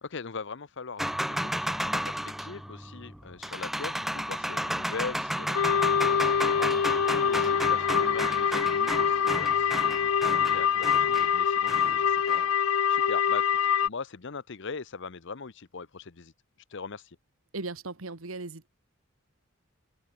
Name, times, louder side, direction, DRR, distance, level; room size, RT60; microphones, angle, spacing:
voice 1, 0.0-10.0 10.4-13.5 13.8-16.3 16.7-17.2, left 4 dB, 60° left, 0.9 m, -41 dB
sound 1, 1.0-12.6, equal, ahead, 0.6 m, -33 dB
sound 2, 5.5-13.9, left 7 dB, 85° left, 0.5 m, -25 dB
voice 2, 17.5-18.7, right 3 dB, 80° right, 1.6 m, -37 dB
head